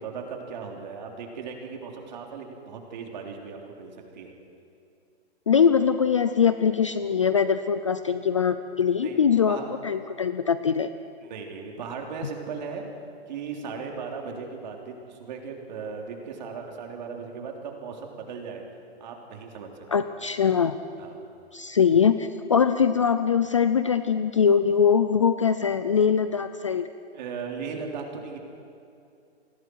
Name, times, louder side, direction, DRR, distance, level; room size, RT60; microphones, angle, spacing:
voice 1, 0.0-4.3 9.0-9.7 11.2-12.8 13.3-18.6 19.0-20.1 21.0-21.1 27.1-28.4, right 5 dB, 45° right, 1 dB, 3.4 m, -37 dB
voice 2, 5.5-9.6 9.8-10.9 19.9-20.8 21.5-26.9, left 7 dB, 30° left, 11 dB, 0.4 m, -22 dB
28.5 x 21.5 x 4.6 m, 2.6 s
hypercardioid pair, 165°, 33 cm